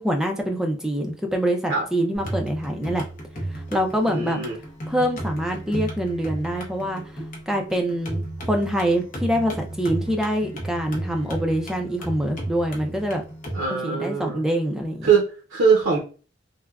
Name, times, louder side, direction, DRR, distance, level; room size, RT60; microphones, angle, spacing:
voice 1, 0.0-3.0 3.5-4.4 4.9-7.0 7.5-13.2 13.8-15.1, equal, 5° right, 3 dB, 0.3 m, -25 dB
sound 1, 2.2-13.7, right 1 dB, 45° left, 0.7 m, -34 dB
voice 2, 4.1-4.6 13.5-14.4 15.0-16.0, right 5 dB, 85° right, -1 dB, 0.6 m, -22 dB
3.4 x 2.1 x 2.3 m, 0.37 s
head